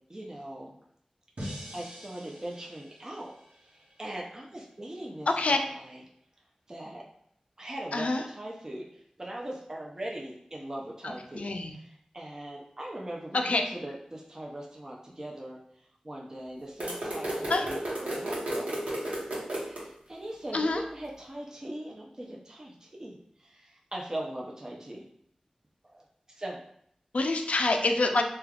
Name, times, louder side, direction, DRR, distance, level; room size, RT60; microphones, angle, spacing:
voice 1, 0.1-0.8 1.7-3.3 3.7-6.0 6.7-7.0 7.6-15.6 16.0-18.8 19.6-25.0 25.8-26.0 26.4-26.6, right 1 dB, 25° right, -3 dB, 0.5 m, -40 dB
sound 1, 1.4-4.5, equal, 65° right, 0.8 m, -44 dB
voice 2, 7.9-8.2 11.4-11.7 13.3-13.6 17.5-17.7 20.5-20.8 27.1-28.2, left 2 dB, 75° left, 4 dB, 0.3 m, -26 dB
sound 2, 16.8-19.8, right 1 dB, 90° right, 0.9 m, -33 dB
3.2 x 2.3 x 2.3 m, 0.69 s
wide cardioid pair, 60°, 2 cm